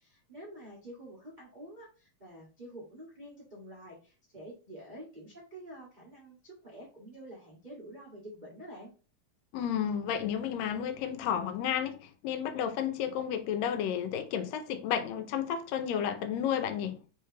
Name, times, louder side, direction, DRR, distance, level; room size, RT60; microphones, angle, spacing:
voice 1, 0.3-8.9, right 1 dB, 75° right, 0.4 m, -48 dB
voice 2, 9.5-17.0, left 9 dB, 80° left, 1.6 m, -32 dB
4.5 x 3.1 x 3.2 m
omnidirectional pair, 3.5 m